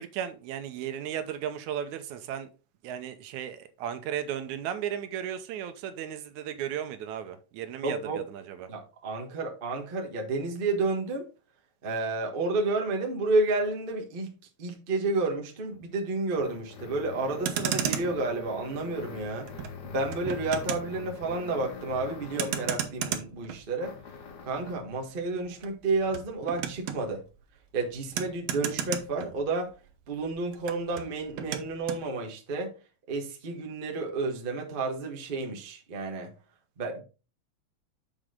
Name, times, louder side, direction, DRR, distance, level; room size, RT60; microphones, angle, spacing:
voice 1, 0.0-2.5 2.8-8.7, right 9 dB, 85° right, 2.2 m, -35 dB
voice 2, 7.8-8.2 8.7-11.3 11.8-14.3 14.6-19.5 19.8-24.0 24.4-27.2 27.7-29.7 30.1-32.7 33.1-36.3 36.8-37.0, right 3 dB, 35° right, 0.8 m, -31 dB
sound 1, 15.7-22.9 23.8-24.9, left 6 dB, 70° left, 1.0 m, -44 dB
Motor vehicle (road), 17.2-29.9 30.1-32.1, right 9 dB, 70° right, 1.8 m, -36 dB
6.7 x 6.1 x 3.7 m
omnidirectional pair, 3.3 m